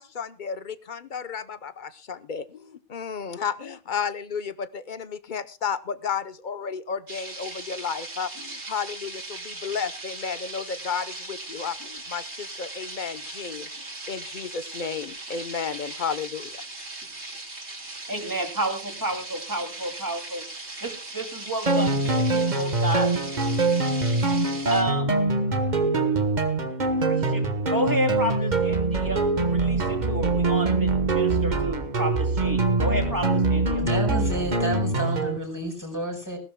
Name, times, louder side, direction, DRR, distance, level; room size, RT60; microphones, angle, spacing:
voice 1, 0.0-16.6, left 6 dB, 45° left, 13 dB, 0.9 m, -33 dB
Bacon Sizzling, 7.1-24.8, right 2 dB, 70° right, 3.3 m, -38 dB
voice 2, 17.8-20.4 20.8-23.1 24.7-25.1 27.0-29.2 29.5-33.8, right 1 dB, 15° right, 4 dB, 2.6 m, -31 dB
sound 1, 21.7-35.4, right 3 dB, 40° right, 1.4 m, -23 dB
voice 3, 33.8-36.4, right 1 dB, 15° left, 1 dB, 5.0 m, -30 dB
19.5 x 16.5 x 2.2 m, 0.31 s
omnidirectional pair, 1.2 m